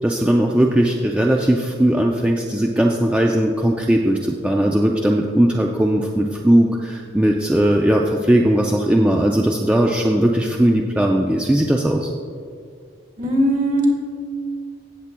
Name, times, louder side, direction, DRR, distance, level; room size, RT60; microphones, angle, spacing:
voice 1, 0.0-12.1, right 1 dB, 5° right, 0 dB, 0.3 m, -18 dB
voice 2, 13.2-13.9, right 1 dB, 40° right, -1 dB, 1.8 m, -18 dB
16.0 x 7.3 x 2.2 m, 2.2 s
head